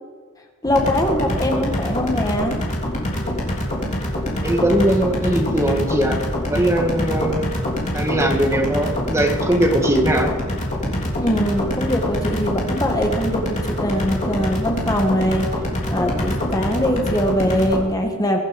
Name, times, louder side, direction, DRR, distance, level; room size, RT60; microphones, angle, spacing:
sound 1, 0.6-17.8, left 1 dB, 35° left, 3.3 m, -25 dB
voice 1, 0.6-2.6 11.2-15.5 15.9-18.4, equal, 15° left, 3 dB, 1.5 m, -22 dB
voice 2, 4.4-6.2 6.5-7.5 7.9-10.3, right 1 dB, 15° right, 2 dB, 1.6 m, -20 dB
23.0 x 9.3 x 5.2 m, 1.5 s
head